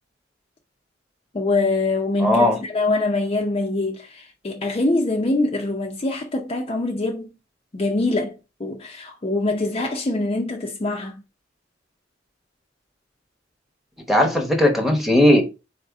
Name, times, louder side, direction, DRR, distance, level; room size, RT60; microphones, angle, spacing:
voice 1, 1.3-7.3 7.7-11.2, left 2 dB, 30° left, 0.5 m, -24 dB
voice 2, 2.2-2.6 14.1-15.4, left 1 dB, ahead, 0.9 m, -17 dB
4.2 x 2.7 x 4.6 m
head